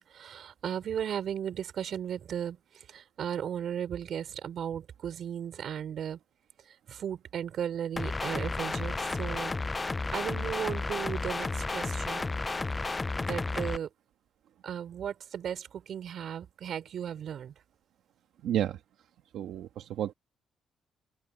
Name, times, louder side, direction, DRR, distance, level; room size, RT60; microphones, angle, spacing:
voice 1, 0.0-6.2 6.7-9.5 10.1-12.3 13.3-13.9 14.6-17.5, right 9 dB, 55° right, 4.8 m, -36 dB
sound 1, 8.0-13.8, left 3 dB, 15° left, 0.3 m, -32 dB
voice 2, 18.4-18.8 19.3-20.1, right 11 dB, 90° right, 1.5 m, -31 dB
open air
cardioid pair, 165°, 0 cm